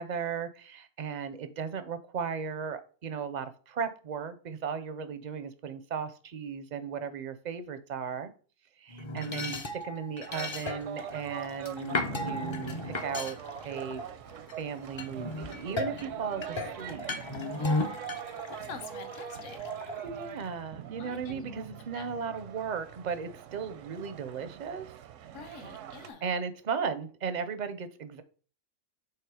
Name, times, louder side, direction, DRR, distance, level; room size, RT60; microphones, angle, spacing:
voice 1, 0.0-8.3 8.8-14.0 14.6-17.1 20.0-24.9 26.2-28.2, right 6 dB, 50° right, 0.5 m, -36 dB
sound 1, 8.9-14.5 15.0-20.5, left 2 dB, 35° left, 0.4 m, -36 dB
sound 2, 10.3-26.1, right 10 dB, 80° right, 0.9 m, -43 dB
voice 2, 17.6-18.0 18.5-19.6 21.0-21.4 21.9-22.1 25.3-26.2, left 5 dB, 70° left, 1.2 m, -46 dB
5.8 x 3.6 x 4.8 m
omnidirectional pair, 1.3 m